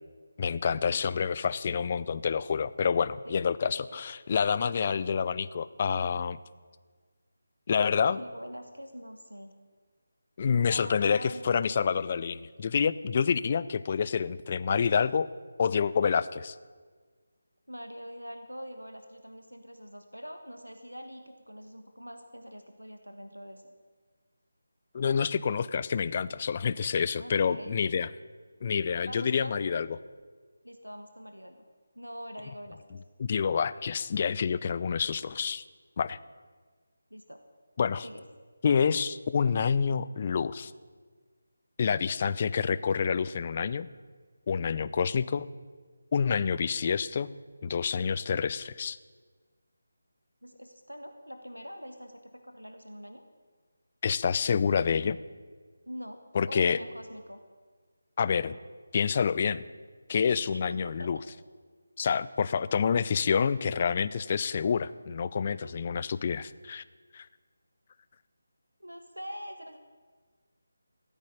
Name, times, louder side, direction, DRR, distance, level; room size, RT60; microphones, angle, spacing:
voice 1, 0.4-6.4 7.7-8.2 10.4-15.3 15.6-16.6 24.9-28.1 28.6-30.0 33.2-35.6 36.0-36.2 37.8-38.1 38.6-40.7 41.8-43.9 44.5-45.5 46.1-47.3 47.6-49.0 54.0-55.2 56.3-56.8 58.2-58.5 58.9-59.6 60.1-61.2 62.0-66.8 67.1-67.3, left 6 dB, 30° left, 16 dB, 0.5 m, -28 dB
voice 2, 8.2-9.6 10.6-11.7 14.7-15.1 17.7-23.6 27.2-27.8 29.0-29.5 30.6-31.6 31.9-33.0 37.1-37.4 38.0-38.2 50.4-53.2 55.8-56.2 56.5-57.4 60.5-61.1 65.5-65.8 68.8-69.8, equal, 90° right, 7 dB, 1.4 m, -44 dB
15.0 x 8.9 x 9.7 m, 1.5 s
figure-of-eight pair, 155°, 0 cm